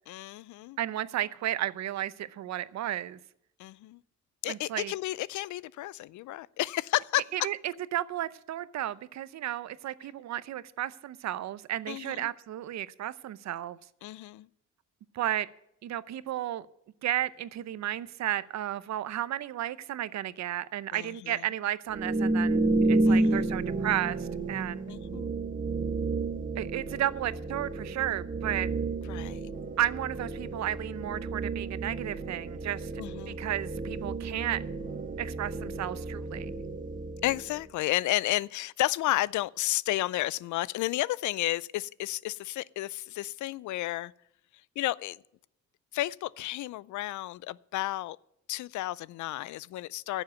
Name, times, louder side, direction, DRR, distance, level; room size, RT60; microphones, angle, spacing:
voice 1, 0.1-0.8 3.6-4.0 4.4-7.2 11.9-12.3 14.0-14.5 20.9-21.4 23.1-23.5 24.9-25.3 29.1-29.5 33.0-33.4 37.2-44.1 44.8-45.2 45.9-48.2 48.5-50.2, left 16 dB, 75° left, 0.5 m, -32 dB
voice 2, 0.8-3.2 4.5-4.9 7.3-13.8 15.1-15.5 15.8-16.7 17.0-22.6 22.9-24.9 26.6-28.7 29.8-32.9 33.3-34.6 35.2-36.5, right 12 dB, 65° right, 0.7 m, -33 dB
sound 1, 21.9-37.7, right 2 dB, 25° right, 1.2 m, -31 dB
10.5 x 7.3 x 9.3 m
cardioid pair, 90°, 30 cm